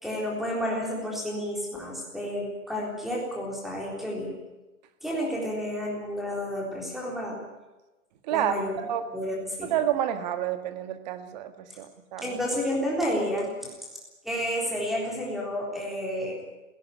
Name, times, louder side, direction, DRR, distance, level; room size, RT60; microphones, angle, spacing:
voice 1, 0.0-4.3 5.0-7.4 8.3-8.7 9.1-9.7 12.2-13.7 14.2-16.4, equal, ahead, -2 dB, 3.8 m, -30 dB
voice 2, 8.3-9.0 9.6-12.4, right 11 dB, 30° right, 9 dB, 1.6 m, -29 dB
17.0 x 17.0 x 9.9 m, 1.1 s
hypercardioid pair, 165°, 45 cm